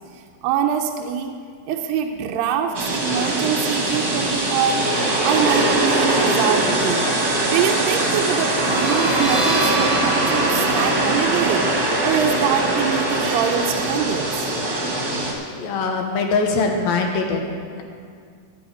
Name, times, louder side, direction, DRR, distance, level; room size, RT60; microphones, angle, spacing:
voice 1, 0.4-1.3 1.7-4.8 5.2-7.1 7.4-14.5, right 8 dB, 80° right, 3 dB, 2.3 m, -24 dB
sound 1, 2.7-15.3, right 2 dB, 40° right, 1.5 m, -21 dB
sound 2, 8.4-13.9, right 2 dB, 20° right, 1.0 m, -30 dB
voice 2, 15.5-17.8, left 3 dB, 75° left, 2 dB, 2.8 m, -22 dB
14.5 x 9.1 x 4.9 m, 2.2 s
omnidirectional pair, 4.3 m